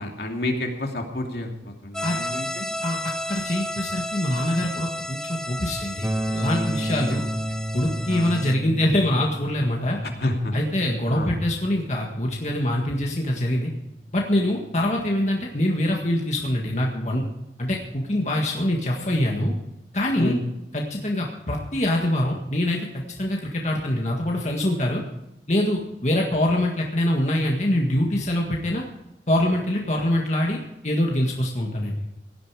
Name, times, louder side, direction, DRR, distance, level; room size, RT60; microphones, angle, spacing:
voice 1, 0.0-2.7 6.8-7.3 8.1-8.3 10.0-10.5 11.1-11.3 20.1-20.4, left 1 dB, 65° left, 2 dB, 2.7 m, -30 dB
sound 1, 1.9-8.5, left 1 dB, 5° left, 0.7 m, -33 dB
voice 2, 2.8-7.2 7.7-10.0 10.5-13.7 14.1-17.2 17.6-19.6 19.9-20.4 20.7-25.0 25.5-28.9 29.3-32.0, left 1 dB, 40° left, -1 dB, 1.8 m, -24 dB
sound 2, 6.0-15.9, right 1 dB, 15° right, 1.4 m, -34 dB
17.5 x 12.0 x 4.9 m, 0.89 s
head